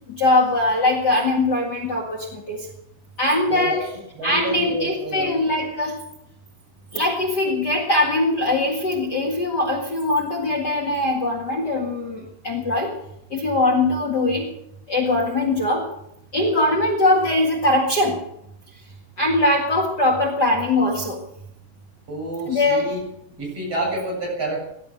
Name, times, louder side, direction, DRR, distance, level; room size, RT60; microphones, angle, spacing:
voice 1, 0.1-2.7 3.2-4.0 4.2-6.0 6.9-12.9 13.3-14.5 14.9-15.9 16.3-18.2 19.2-21.2 22.5-23.0, left 2 dB, 35° left, 0 dB, 2.2 m, -21 dB
voice 2, 4.2-5.3 22.1-23.0 23.4-24.6, right 1 dB, 45° right, -2 dB, 8.9 m, -28 dB
17.5 x 11.5 x 6.6 m, 0.79 s
omnidirectional pair, 3.7 m